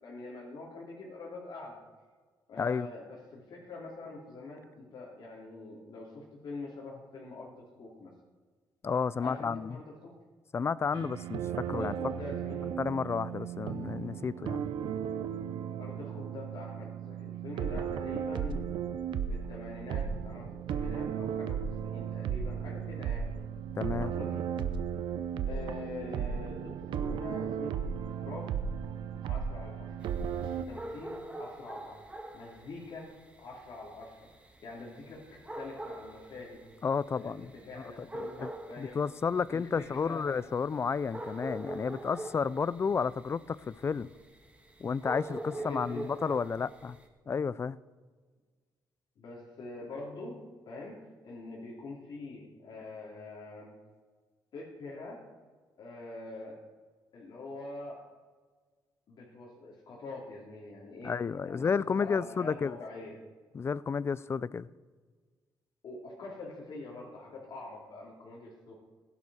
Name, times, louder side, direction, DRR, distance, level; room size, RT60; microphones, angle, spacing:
voice 1, 0.0-1.8 2.5-8.1 9.2-10.1 11.6-12.7 15.8-18.7 19.3-23.4 24.0-24.4 25.4-28.5 29.3-30.0 30.7-32.1 32.3-33.1 33.4-36.6 37.1-39.0 39.5-40.3 45.6-46.2 49.2-53.7 54.5-55.2 55.8-56.6 57.1-58.0 59.1-61.1 61.5-61.7 62.0-63.2 65.8-68.7, left 2 dB, 65° left, 3.3 m, -45 dB
voice 2, 2.6-2.9 8.8-9.8 10.5-11.4 11.7-11.9 12.8-14.6 23.8-24.1 36.8-37.5 38.4-38.5 38.8-44.1 44.8-47.0 47.3-47.8 61.0-62.8 63.5-64.7, left 5 dB, 35° left, 0.4 m, -31 dB
sound 1, 10.9-30.6, right 8 dB, 85° right, 0.8 m, -35 dB
sound 2, 30.0-47.1, right 1 dB, 15° right, 1.9 m, -44 dB
16.0 x 11.0 x 4.3 m
cardioid pair, 100°, 8 cm